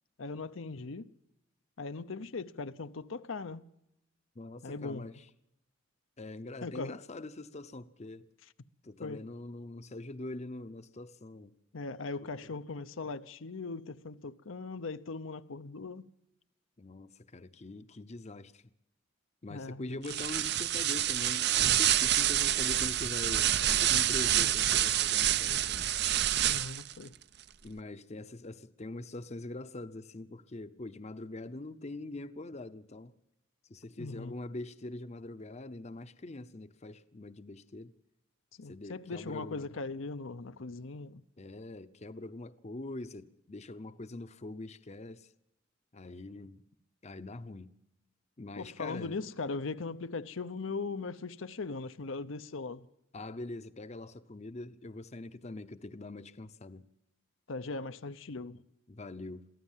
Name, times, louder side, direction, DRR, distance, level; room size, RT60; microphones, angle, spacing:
voice 1, 0.2-1.1 1.8-3.6 4.6-5.1 6.6-7.0 9.0-9.2 11.7-16.1 19.5-20.2 24.4-24.5 26.4-27.1 34.0-34.3 38.6-41.2 48.6-52.9 57.5-58.6, left 3 dB, 75° left, 0.8 m, -39 dB
voice 2, 4.4-5.2 6.2-8.3 8.8-11.5 12.4-12.5 16.8-18.7 19.4-26.0 27.6-33.1 33.7-37.9 38.6-39.7 41.4-45.3 45.9-46.6 47.0-47.7 48.4-49.1 53.1-56.9 58.9-59.5, left 2 dB, 35° left, 0.7 m, -43 dB
sound 1, 20.0-26.9, right 12 dB, 55° right, 0.7 m, -27 dB
23.0 x 15.5 x 7.4 m
head